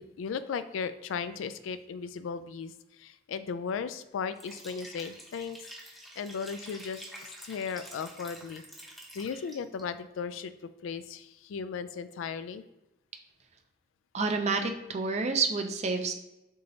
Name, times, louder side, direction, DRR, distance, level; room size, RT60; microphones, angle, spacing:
voice 1, 0.0-5.6 5.8-7.0 7.4-8.6 9.1-10.5 10.8-12.6, left 6 dB, 85° left, 13 dB, 0.3 m, -36 dB
Liquid, 4.3-9.8, right 1 dB, ahead, 0.7 m, -48 dB
voice 2, 14.1-16.1, right 4 dB, 35° right, 5 dB, 0.5 m, -29 dB
6.1 x 2.9 x 2.7 m, 0.97 s
head